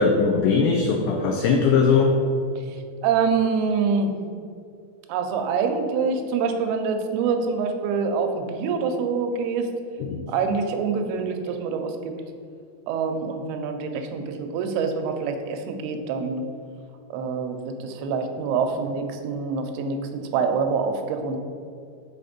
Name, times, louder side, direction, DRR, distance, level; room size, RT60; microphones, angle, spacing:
voice 1, 0.0-2.1 10.0-10.3, left 5 dB, 90° left, 1 dB, 1.8 m, -20 dB
voice 2, 3.0-4.1 5.1-9.7 10.3-12.1 12.9-16.4 17.1-21.4, right 5 dB, 85° right, 5 dB, 2.6 m, -25 dB
6.4 x 4.2 x 5.1 m, 2.3 s
omnidirectional pair, 4.4 m